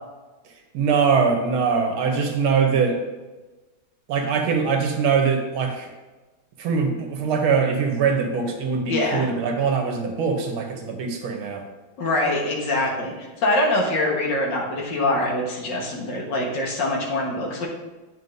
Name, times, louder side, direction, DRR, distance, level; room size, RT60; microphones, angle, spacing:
voice 1, 0.7-3.0 4.1-5.9 6.6-11.6, right 5 dB, 85° right, 3 dB, 1.8 m, -22 dB
voice 2, 8.9-9.3 12.0-17.7, left 1 dB, 65° left, -2 dB, 2.0 m, -24 dB
9.2 x 5.5 x 2.6 m, 1.2 s
omnidirectional pair, 2.2 m